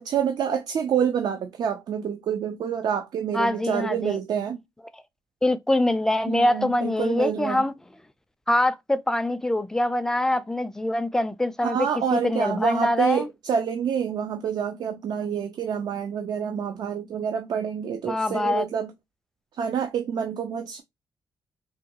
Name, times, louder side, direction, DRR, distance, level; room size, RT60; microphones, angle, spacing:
voice 1, 0.0-4.6 6.3-7.7 11.6-18.9 19.5-20.8, right 7 dB, 65° right, 0.4 m, -27 dB
voice 2, 3.3-4.2 5.4-7.7 8.5-11.8 12.1-13.3 18.1-18.7, left 1 dB, 5° left, 0.3 m, -24 dB
3.6 x 2.2 x 2.8 m
cardioid pair, 100°, 8 cm